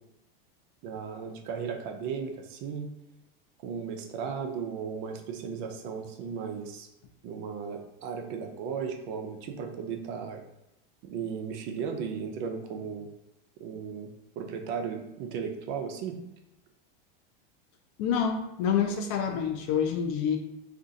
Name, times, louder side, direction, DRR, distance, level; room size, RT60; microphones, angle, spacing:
voice 1, 0.8-2.9 3.6-6.9 7.2-10.4 11.0-13.1 13.6-14.1 14.4-16.2, right 6 dB, 50° right, 4 dB, 0.6 m, -35 dB
voice 2, 18.0-20.4, left 7 dB, 50° left, 5 dB, 0.5 m, -27 dB
2.5 x 2.4 x 3.9 m, 0.88 s
supercardioid pair, 130°, 29 cm